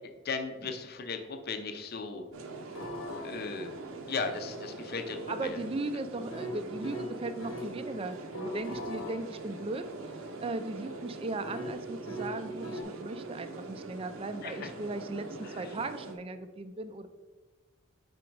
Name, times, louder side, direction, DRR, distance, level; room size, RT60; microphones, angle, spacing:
voice 1, 0.2-2.2 3.2-3.8 4.1-5.6 14.4-14.7, left 4 dB, 50° left, 6 dB, 0.6 m, -36 dB
sound 1, 2.3-16.1, right 3 dB, 85° right, 0.7 m, -43 dB
sound 2, 2.7-7.7 8.1-12.8, equal, 75° left, 1.0 m, -42 dB
voice 2, 5.3-8.2 8.4-9.9 10.4-17.1, right 2 dB, 25° right, 10 dB, 0.4 m, -37 dB
5.1 x 4.8 x 4.6 m, 1.3 s
head